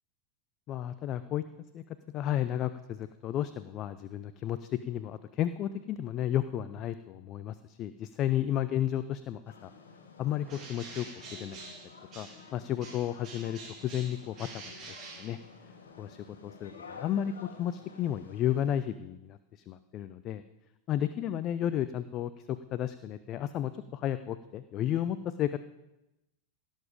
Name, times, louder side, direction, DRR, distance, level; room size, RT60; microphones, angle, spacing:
voice 1, 0.7-1.4 1.7-9.7 10.2-11.1 11.4-11.6 12.1-14.6 14.9-15.4 16.0-20.4 20.9-25.6, left 11 dB, 40° left, 13 dB, 0.5 m, -33 dB
sound 1, 9.4-18.8, left 5 dB, 70° left, 1.6 m, -51 dB
Bird, 10.4-12.5 12.8-15.9, right 3 dB, 35° right, 3.0 m, -47 dB
16.5 x 7.3 x 5.1 m, 0.95 s
figure-of-eight pair, 85°, 0 cm